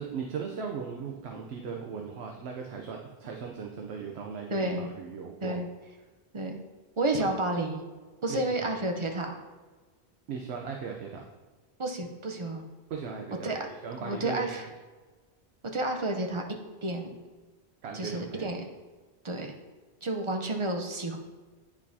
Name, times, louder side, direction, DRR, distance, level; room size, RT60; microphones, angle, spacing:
voice 1, 0.0-5.6 7.2-7.3 8.3-8.7 10.3-11.2 12.9-13.5 13.8-14.5 17.8-18.5, right 6 dB, 85° right, 1 dB, 0.9 m, -38 dB
voice 2, 4.5-4.9 5.4-5.7 6.3-6.6 7.0-7.8 8.2-9.3 11.8-12.6 13.4-13.7 14.0-14.7 15.7-16.4 16.8-17.1 17.9-18.6 19.2-19.5 20.0-21.2, right 2 dB, 35° right, 3 dB, 0.6 m, -30 dB
9.1 x 4.8 x 2.7 m, 1.3 s
omnidirectional pair, 1.1 m